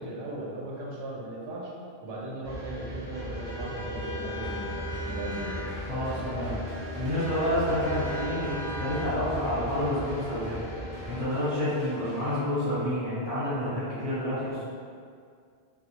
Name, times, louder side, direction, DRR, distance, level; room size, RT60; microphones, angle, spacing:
voice 1, 0.0-1.7 2.0-5.7, right 1 dB, 70° right, -5 dB, 0.8 m, -38 dB
sound 1, 2.4-11.2, equal, 15° right, 1.0 m, -36 dB
sound 2, 4.4-12.4, left 1 dB, 30° left, 0.4 m, -45 dB
voice 2, 5.8-6.6 6.9-10.6 11.0-14.6, left 1 dB, 30° right, -14 dB, 1.1 m, -29 dB
2.2 x 2.0 x 2.9 m, 2.2 s
omnidirectional pair, 1.1 m